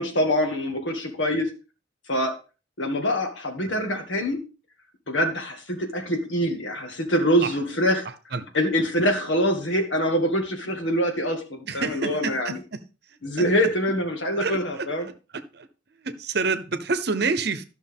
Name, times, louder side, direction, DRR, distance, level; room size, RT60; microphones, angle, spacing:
voice 1, 0.0-1.5 2.1-2.3 2.8-4.4 5.1-8.1 8.5-11.4 11.7-12.6 13.2-15.1, equal, 85° left, 4 dB, 2.0 m, -24 dB
voice 2, 11.7-12.8 13.1-13.5 14.4-14.9 15.3-15.7 16.0-17.6, right 4 dB, 60° right, 11 dB, 0.9 m, -28 dB
13.0 x 6.2 x 3.6 m, 0.33 s
head